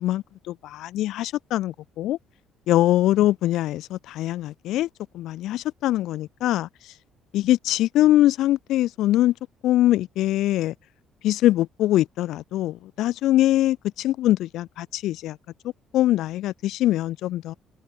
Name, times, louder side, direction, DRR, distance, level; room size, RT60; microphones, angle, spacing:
voice 1, 0.0-2.2 2.7-4.9 5.1-6.9 7.3-9.3 9.6-10.7 11.2-15.4 15.9-17.5, left 14 dB, 65° left, 0.5 m, -23 dB
cardioid pair, 165°, 0 cm